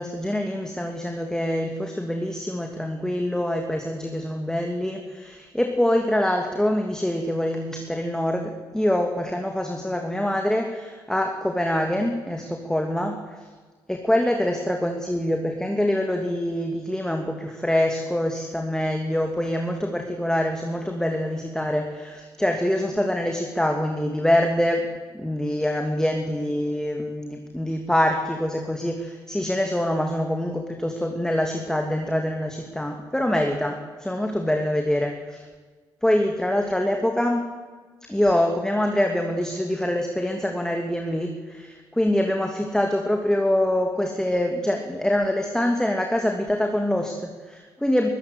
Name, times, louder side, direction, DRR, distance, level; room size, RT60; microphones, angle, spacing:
voice 1, 0.0-13.2 13.9-24.9 25.1-35.4 36.0-37.4 38.1-48.1, left 1 dB, 5° left, 3 dB, 2.9 m, -25 dB
21.5 x 14.5 x 8.3 m, 1.4 s
hypercardioid pair, 50°, 11 cm